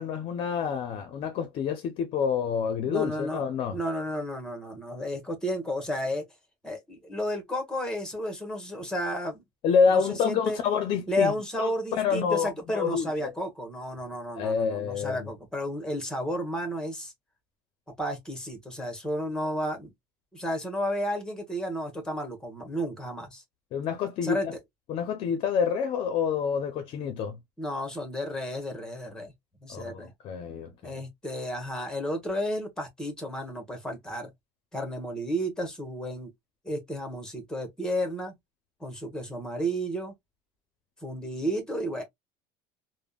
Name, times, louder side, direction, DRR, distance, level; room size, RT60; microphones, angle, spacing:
voice 1, 0.0-3.8 9.6-11.3 11.6-13.3 14.3-15.3 23.7-24.4 24.9-27.4 29.7-31.0, left 6 dB, 50° left, 0.6 m, -28 dB
voice 2, 2.9-6.3 6.6-9.4 9.9-10.6 11.1-17.1 18.0-19.9 20.3-23.4 24.2-24.5 27.6-29.3 29.6-30.1 30.8-34.3 34.7-36.3 36.6-38.4 38.8-40.1 41.0-42.0, equal, 5° left, 1.1 m, -32 dB
3.5 x 2.1 x 2.3 m
cardioid pair, 140°, 12 cm